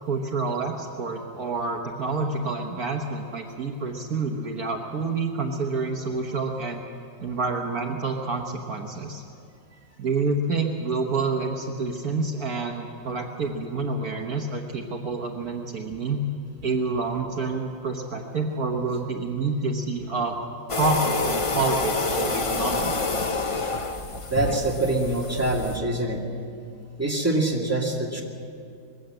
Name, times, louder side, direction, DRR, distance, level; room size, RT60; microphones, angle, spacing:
voice 1, 0.0-6.8 7.2-9.2 10.0-16.2 16.6-20.4 20.8-23.0, right 3 dB, 60° right, 2 dB, 1.6 m, -28 dB
sound 1, 20.7-25.8, left 3 dB, 50° left, 0.3 m, -27 dB
voice 2, 24.3-26.2 27.0-28.2, right 2 dB, 10° right, -2 dB, 2.3 m, -25 dB
21.0 x 15.5 x 7.8 m, 2.4 s
omnidirectional pair, 1.9 m